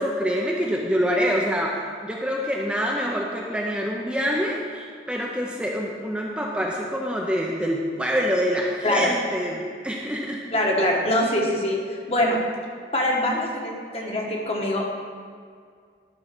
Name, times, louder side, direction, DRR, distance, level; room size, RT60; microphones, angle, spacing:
voice 1, 0.0-10.4, equal, 5° right, -2 dB, 0.6 m, -26 dB
voice 2, 10.5-12.4 12.9-14.9, left 1 dB, 35° left, -1 dB, 1.3 m, -23 dB
12.0 x 4.2 x 5.9 m, 2.1 s
head